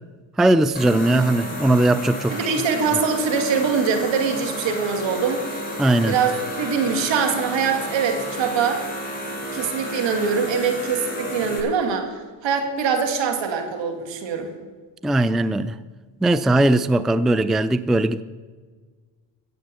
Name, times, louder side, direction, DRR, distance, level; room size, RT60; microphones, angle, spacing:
voice 1, 0.4-2.4 5.8-6.2 15.0-15.8 16.2-18.2, right 1 dB, ahead, 0.4 m, -19 dB
sound 1, 0.7-11.6, equal, 20° left, 4.4 m, -32 dB
voice 2, 2.3-5.4 6.1-8.8 9.3-12.1 12.4-14.5, right 6 dB, 75° right, 2.3 m, -23 dB
14.5 x 7.9 x 6.9 m
cardioid pair, 80°, 45 cm